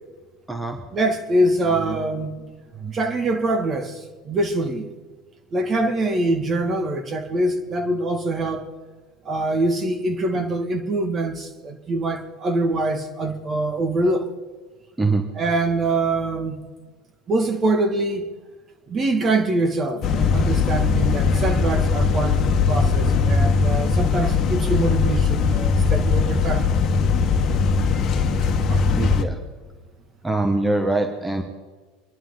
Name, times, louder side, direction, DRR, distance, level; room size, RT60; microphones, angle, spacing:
voice 1, 0.9-2.3 2.7-4.9 5.5-8.7 9.2-14.3 15.3-16.6 17.3-18.3 18.9-26.7 28.7-28.8, right 2 dB, 30° right, 2.2 m, -24 dB
sound 1, 20.0-29.2, left 5 dB, 40° left, 1.6 m, -20 dB
voice 2, 29.0-29.4 30.2-31.4, right 2 dB, 10° right, 1.6 m, -23 dB
26.0 x 11.0 x 4.0 m
supercardioid pair, 105°, 0 cm